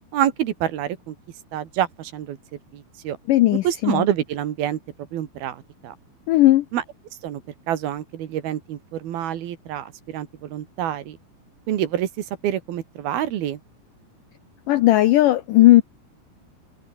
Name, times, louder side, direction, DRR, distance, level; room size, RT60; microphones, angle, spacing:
voice 1, 0.1-1.2 1.5-2.4 2.7-3.2 3.6-4.8 5.1-6.0 6.7-6.8 7.2-7.4 7.7-11.2 11.7-12.1 12.4-13.6, right 11 dB, 70° right, 3.5 m, -27 dB
voice 2, 3.3-4.0 6.3-6.7 14.7-15.8, left 16 dB, 80° left, 1.9 m, -16 dB
omnidirectional pair, 4.7 m